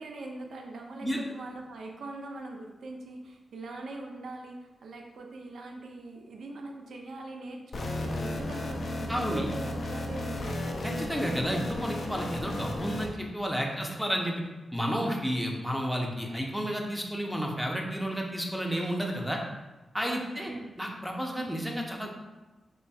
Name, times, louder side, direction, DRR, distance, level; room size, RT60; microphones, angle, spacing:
voice 1, 0.0-10.6 20.0-20.7, right 2 dB, 80° right, 2 dB, 0.5 m, -42 dB
sound 1, 7.7-13.1, left 1 dB, 60° left, 0.4 m, -34 dB
voice 2, 9.1-9.5 10.8-14.4 14.7-19.4 19.9-20.5 20.8-22.1, equal, ahead, 0 dB, 0.6 m, -31 dB
4.1 x 3.1 x 2.3 m, 1.1 s
cardioid pair, 55°, 0 cm